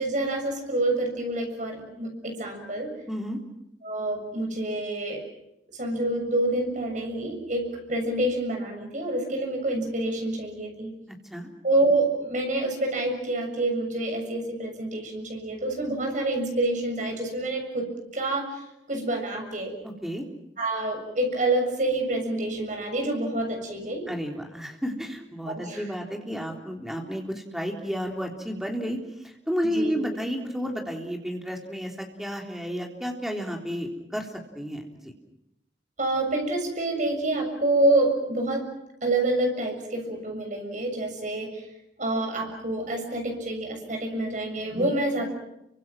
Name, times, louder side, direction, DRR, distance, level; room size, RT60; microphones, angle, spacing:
voice 1, 0.0-2.9 3.8-5.2 5.8-10.9 11.6-17.9 18.1-18.6 18.9-19.7 20.6-24.1 25.5-25.9 29.7-30.0 36.0-38.6 39.0-41.6 42.0-45.2, right 2 dB, 45° right, 3 dB, 7.0 m, -27 dB
voice 2, 3.1-3.4 11.3-11.5 19.8-20.2 24.1-34.3 34.6-35.1 44.8-44.9, equal, ahead, 1 dB, 3.6 m, -32 dB
29.5 x 25.0 x 6.2 m, 0.83 s
head